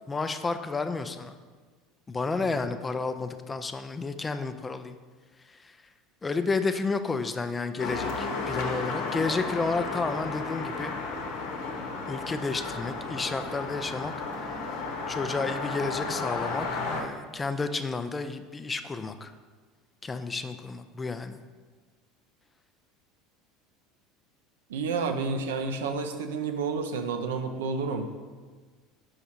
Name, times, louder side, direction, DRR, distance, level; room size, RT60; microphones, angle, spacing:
voice 1, 0.1-1.4 2.1-5.0 5.5-5.8 6.2-10.9 12.1-14.1 15.1-19.3 20.0-21.4, left 4 dB, 20° left, 9 dB, 0.4 m, -31 dB
sound 1, 7.8-17.0, left 3 dB, 65° left, 0.9 m, -33 dB
voice 2, 24.7-28.1, right 4 dB, 75° right, 6 dB, 0.5 m, -30 dB
5.5 x 4.8 x 4.2 m, 1.4 s
hypercardioid pair, 75°, 0 cm